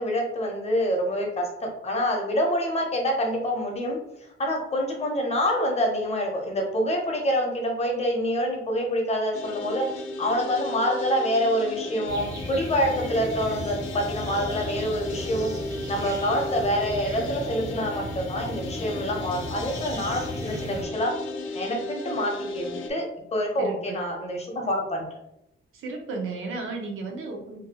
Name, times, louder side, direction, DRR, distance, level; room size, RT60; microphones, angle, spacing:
voice 1, 0.0-4.0 4.4-21.1 21.5-25.1, equal, 30° left, 1 dB, 0.6 m, -26 dB
sound 1, 9.3-22.9, left 2 dB, 85° left, 0.4 m, -35 dB
sound 2, 12.1-20.8, right 1 dB, 20° right, 0.4 m, -36 dB
voice 2, 23.6-24.0 25.7-27.6, right 3 dB, 90° right, 1 dB, 0.6 m, -33 dB
2.6 x 2.2 x 2.8 m, 0.83 s
wide cardioid pair, 160°, 20 cm